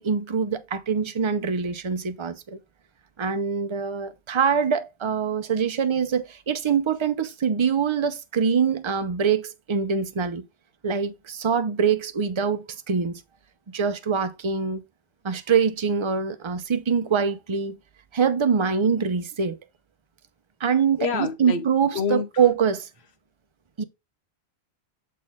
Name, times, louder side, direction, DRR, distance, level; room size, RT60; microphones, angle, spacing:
voice 1, 0.0-2.6 3.2-10.4 10.8-13.2 13.7-14.8 15.2-17.8 18.1-19.6 20.6-22.9 23.8-23.9, right 6 dB, 30° right, 0.6 m, -24 dB
voice 2, 21.0-21.6 21.9-22.3, left 6 dB, 80° left, 1.2 m, -27 dB
7.4 x 4.3 x 3.5 m
omnidirectional pair, 1.1 m